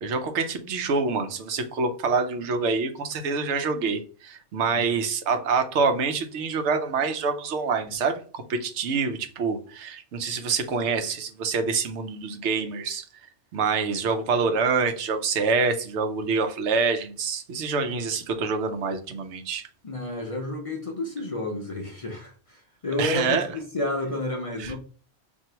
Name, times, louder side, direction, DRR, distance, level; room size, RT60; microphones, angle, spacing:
voice 1, 0.0-13.0 13.5-19.7 23.0-23.5 24.6-24.7, right 4 dB, 75° right, 0.9 m, -26 dB
voice 2, 19.8-24.8, left 1 dB, 40° left, 0.6 m, -31 dB
2.9 x 2.6 x 4.4 m
omnidirectional pair, 1.2 m